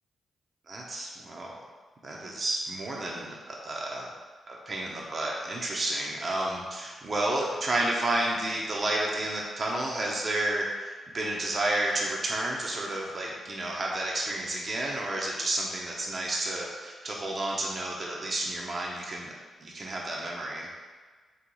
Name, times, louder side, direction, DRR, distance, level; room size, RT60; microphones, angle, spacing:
voice 1, 0.7-1.5 2.0-4.1 4.5-20.7, right 1 dB, 50° right, -2 dB, 0.8 m, -31 dB
4.0 x 2.4 x 4.6 m, 1.4 s
hypercardioid pair, 45°, 0 cm